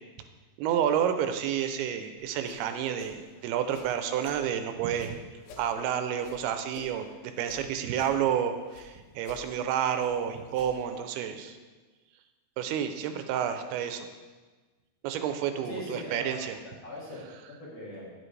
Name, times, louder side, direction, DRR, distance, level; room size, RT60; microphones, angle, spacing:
voice 1, 0.6-5.2 5.6-7.1 7.4-11.6 12.6-14.1 15.0-16.6, right 9 dB, 85° right, 8 dB, 2.5 m, -30 dB
sound 1, 2.2-4.5 4.9-7.6 7.9-8.9 9.2-11.0, left 4 dB, 75° left, 1.8 m, -50 dB
voice 2, 15.7-16.4 16.8-18.1, left 1 dB, 55° left, -7 dB, 2.0 m, -40 dB
9.4 x 7.7 x 3.2 m, 1.3 s
omnidirectional pair, 4.5 m